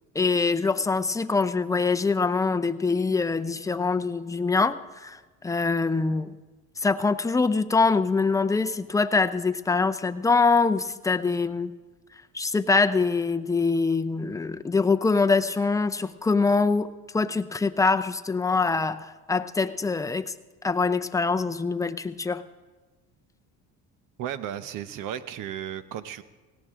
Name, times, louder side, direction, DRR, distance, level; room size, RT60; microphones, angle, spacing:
voice 1, 0.1-6.4 6.8-11.7 12.3-20.3 20.6-22.4, left 4 dB, 10° left, 9 dB, 0.5 m, -24 dB
voice 2, 24.2-26.2, right 10 dB, 70° right, 14 dB, 0.9 m, -34 dB
17.5 x 17.5 x 3.7 m, 1.3 s
cardioid pair, 105°, 34 cm